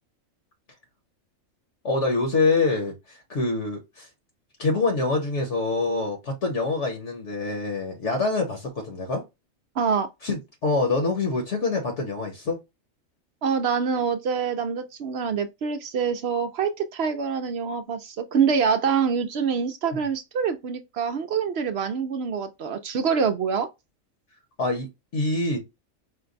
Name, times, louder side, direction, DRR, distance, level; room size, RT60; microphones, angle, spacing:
voice 1, 1.8-4.1 4.6-9.2 10.2-12.6 24.6-25.6, left 3 dB, 60° left, 1.4 m, -25 dB
voice 2, 9.8-10.1 13.4-23.7, right 6 dB, 60° right, 0.7 m, -25 dB
5.0 x 2.2 x 3.9 m
omnidirectional pair, 1.4 m